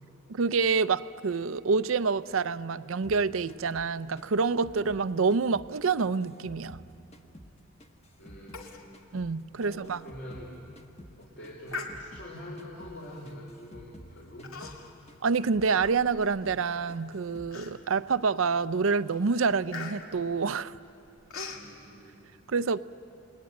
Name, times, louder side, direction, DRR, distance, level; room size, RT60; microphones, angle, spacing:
voice 1, 0.3-6.8 9.1-10.0 15.2-20.7 22.5-22.8, right 4 dB, 70° right, 15 dB, 0.6 m, -27 dB
sound 1, 3.0-5.7 6.0-8.7 8.9-12.3 12.6-13.0 13.2-16.0 16.2-16.6 16.9-17.5, equal, 30° left, 1.1 m, -51 dB
voice 2, 8.2-8.9 9.6-10.6 11.2-14.6 21.5-22.3, equal, 55° left, -3 dB, 3.7 m, -45 dB
Human voice, 8.5-8.9 9.2-9.3 9.8-9.9 10.5-10.7 11.7-12.4 13.2-13.4 14.4-15.0 15.4-16.4 16.9-17.0 17.5-18.1 18.6-18.8 19.1-21.7, left 4 dB, 80° left, 2.2 m, -42 dB
29.0 x 20.5 x 9.1 m, 2.9 s
head